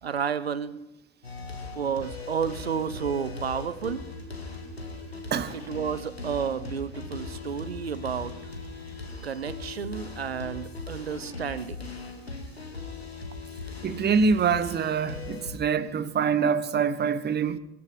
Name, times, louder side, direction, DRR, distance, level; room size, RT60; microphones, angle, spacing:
voice 1, 0.0-0.8 1.7-4.1 5.7-8.4 9.2-11.9, right 7 dB, 80° right, 0.9 m, -31 dB
sound 1, 1.2-15.6, left 3 dB, 90° left, 1.9 m, -39 dB
voice 2, 13.8-17.6, right 6 dB, 35° right, 1.3 m, -25 dB
24.0 x 9.7 x 5.5 m
figure-of-eight pair, 60°, 30 cm